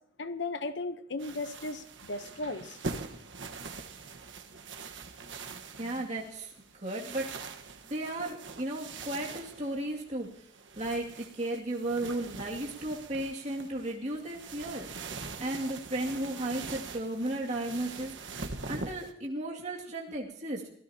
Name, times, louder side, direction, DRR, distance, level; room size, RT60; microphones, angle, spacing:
voice 1, 0.2-2.8, left 3 dB, 65° left, 0.9 m, -36 dB
sound 1, 1.2-19.1, right 4 dB, 70° right, 1.3 m, -43 dB
voice 2, 5.8-6.5 6.8-7.3 7.9-10.3 10.8-14.9 15.4-18.1 18.7-20.8, right 1 dB, 35° right, 2.4 m, -34 dB
26.5 x 17.0 x 2.9 m
head